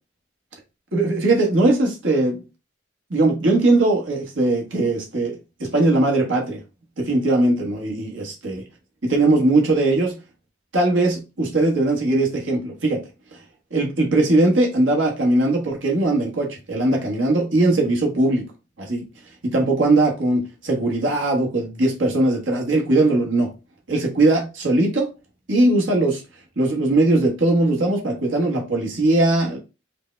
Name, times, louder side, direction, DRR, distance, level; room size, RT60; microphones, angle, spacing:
voice 1, 0.9-2.4 3.1-6.6 7.0-8.6 9.0-10.1 10.7-13.0 13.7-18.5 18.8-19.0 19.4-23.5 23.9-25.1 25.5-26.2 26.6-29.6, right 2 dB, 75° right, 1.3 m, -20 dB
4.9 x 2.2 x 3.1 m
head